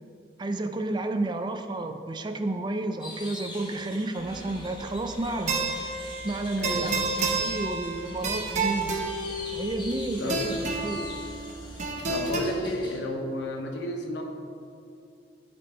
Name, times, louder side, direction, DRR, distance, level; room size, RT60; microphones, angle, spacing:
voice 1, 0.4-5.9 6.2-8.9 9.5-10.5 10.8-11.1, right 2 dB, 25° right, 7 dB, 0.4 m, -31 dB
sound 1, 3.0-13.0, left 2 dB, 25° left, 1.1 m, -44 dB
sound 2, 4.2-12.4, right 3 dB, 40° right, 0.8 m, -31 dB
voice 2, 6.6-7.1 10.2-10.6 12.1-14.2, left 1 dB, 90° left, 3 dB, 0.8 m, -32 dB
9.1 x 4.4 x 4.2 m, 2.5 s
head